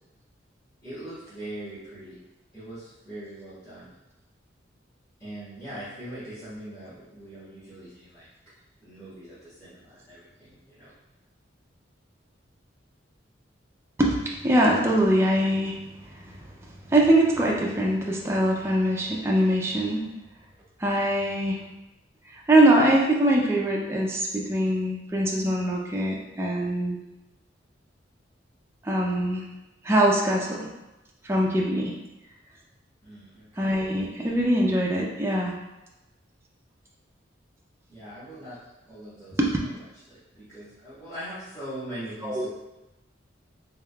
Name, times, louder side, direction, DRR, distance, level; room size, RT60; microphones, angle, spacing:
voice 1, 0.8-2.2 2.5-3.9 5.2-8.2 8.8-10.9 33.0-33.7 37.9-38.6 38.9-39.7 40.1-42.5, right 1 dB, 15° left, -15 dB, 1.3 m, -41 dB
voice 2, 14.0-15.7 16.3-16.4 16.9-20.1 20.8-21.6 22.5-27.0 28.8-29.5 29.8-30.7 31.2-31.9 33.6-35.5 39.4-39.5 42.2-42.5, right 1 dB, 15° right, -2 dB, 0.4 m, -23 dB
3.6 x 3.5 x 2.2 m, 1.0 s
head